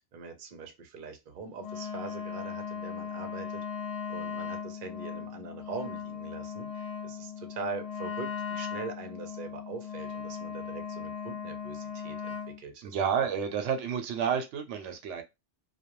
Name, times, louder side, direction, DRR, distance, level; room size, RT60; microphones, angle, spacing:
voice 1, 0.1-3.6 4.1-12.9, right 4 dB, 55° right, 0.7 m, -42 dB
Wind instrument woodwind instrument, 1.6-12.6, left 7 dB, 75° left, 0.9 m, -38 dB
voice 2, 12.8-15.2, right 7 dB, 90° right, 0.9 m, -30 dB
2.3 x 2.2 x 2.9 m
omnidirectional pair, 1.2 m